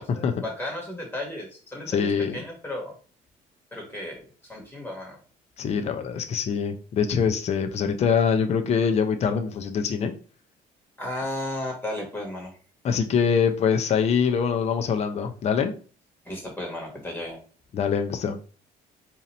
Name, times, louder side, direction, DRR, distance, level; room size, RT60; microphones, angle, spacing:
voice 1, 0.0-2.9 3.7-5.2 11.0-12.5 16.2-17.4, left 1 dB, 10° left, -1 dB, 1.4 m, -34 dB
voice 2, 1.9-2.4 5.6-10.1 12.8-15.7 17.7-18.4, left 6 dB, 40° left, 7 dB, 0.5 m, -24 dB
2.8 x 2.5 x 4.2 m, 0.40 s
cardioid pair, 110°, 17 cm